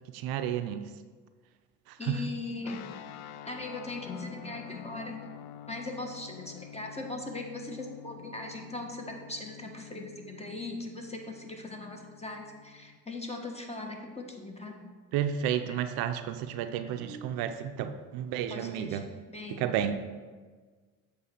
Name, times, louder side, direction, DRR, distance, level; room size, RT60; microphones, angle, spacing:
voice 1, 0.1-0.9 1.9-2.2 15.1-19.1 19.5-20.0, right 9 dB, 75° right, 9 dB, 0.5 m, -32 dB
voice 2, 2.0-5.2 5.7-14.8 16.8-17.4 18.5-19.7, left 2 dB, 15° left, 2 dB, 1.4 m, -40 dB
sound 1, 2.6-13.0, left 10 dB, 85° left, 0.5 m, -48 dB
7.8 x 3.3 x 6.2 m, 1.4 s
hypercardioid pair, 55°, 37 cm